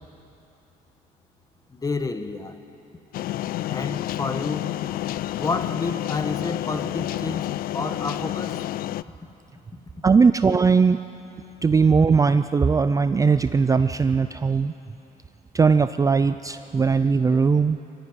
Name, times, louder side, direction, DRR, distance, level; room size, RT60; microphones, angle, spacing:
voice 1, 1.7-2.6 3.7-4.6 5.3-8.6, left 3 dB, 20° left, 9 dB, 1.2 m, -30 dB
sound 1, 3.1-9.0, left 14 dB, 60° left, 0.4 m, -29 dB
voice 2, 10.0-11.0 11.6-14.7 15.5-17.8, right 5 dB, 20° right, 11 dB, 0.4 m, -19 dB
21.5 x 14.5 x 9.7 m, 2.9 s
cardioid pair, 110°, 17 cm